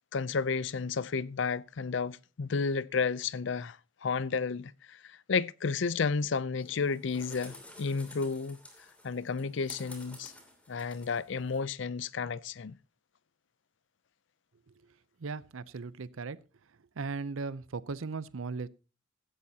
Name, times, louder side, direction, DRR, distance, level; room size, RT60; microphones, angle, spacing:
voice 1, 0.1-8.6 9.0-10.3 10.7-12.8, left 5 dB, 65° left, 0.5 m, -32 dB
sound 1, 6.6-11.6, left 1 dB, 5° left, 2.7 m, -51 dB
voice 2, 15.2-16.4 17.0-18.7, right 4 dB, 85° right, 0.6 m, -37 dB
15.5 x 12.5 x 2.8 m
head